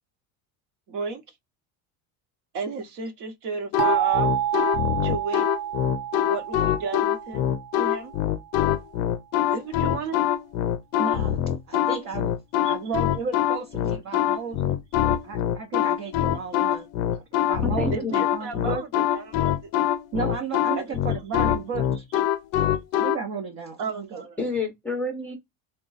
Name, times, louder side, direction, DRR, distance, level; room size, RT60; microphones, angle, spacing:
voice 1, 0.9-1.2 2.5-4.3 5.0-5.5 6.2-7.5 7.7-8.1 9.5-10.2 12.6-12.8 17.9-19.7 20.8-21.2 23.8-24.4, right 5 dB, 50° right, 1.0 m, -33 dB
sound 1, 3.7-23.2, left 11 dB, 55° left, 0.5 m, -24 dB
sound 2, 3.8-8.5, right 11 dB, 85° right, 0.7 m, -29 dB
voice 2, 11.0-11.4 11.7-12.4 12.6-14.8 15.2-16.9 17.5-18.8 20.1-22.1 23.0-24.5, right 5 dB, 35° right, 0.7 m, -33 dB
voice 3, 17.6-18.1 24.4-25.3, left 2 dB, 5° left, 0.7 m, -29 dB
3.6 x 2.3 x 3.8 m
cardioid pair, 165°, 41 cm